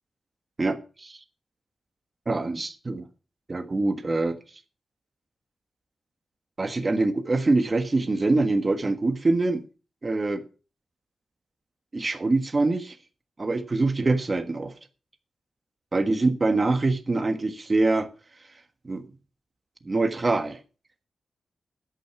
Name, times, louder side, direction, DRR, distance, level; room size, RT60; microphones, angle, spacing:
voice 1, 0.6-1.2 2.3-3.1 3.5-4.4 6.6-9.6 10.0-10.4 11.9-12.9 13.4-14.7 15.9-18.1 18.8-19.0 19.8-20.6, right 2 dB, 25° right, 1.4 m, -24 dB
13.0 x 9.0 x 4.7 m
wide cardioid pair, 180°, 0 cm